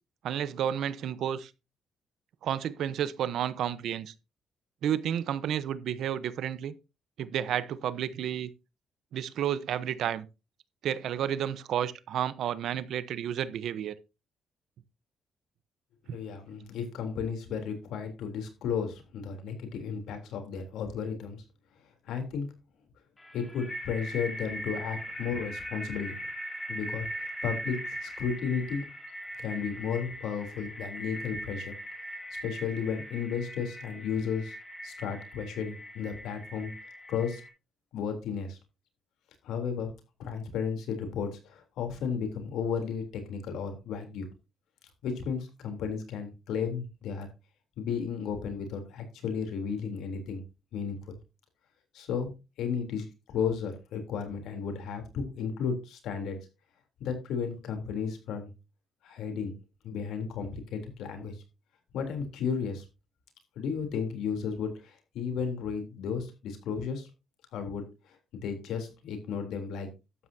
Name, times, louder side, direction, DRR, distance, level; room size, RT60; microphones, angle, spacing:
voice 1, 0.2-1.5 2.4-4.1 4.8-6.7 7.2-8.5 9.1-10.3 10.8-13.9 16.1-16.2, right 10 dB, 75° right, 0.9 m, -31 dB
voice 2, 16.1-21.4 22.0-22.5 23.3-26.2 26.7-28.9 29.4-31.7 32.4-34.5 34.8-36.7 37.1-37.4 37.9-38.6 39.4-39.9 40.2-44.3 45.0-47.3 47.8-50.4 50.7-51.2 51.9-52.3 52.6-56.5 57.0-58.5 59.0-59.5 59.8-61.4 61.9-62.8 63.5-67.1 67.5-69.9, left 6 dB, 80° left, 3.4 m, -34 dB
sound 1, 23.2-37.5, equal, 15° left, 3.7 m, -40 dB
12.5 x 9.5 x 2.8 m
cardioid pair, 90°, 0 cm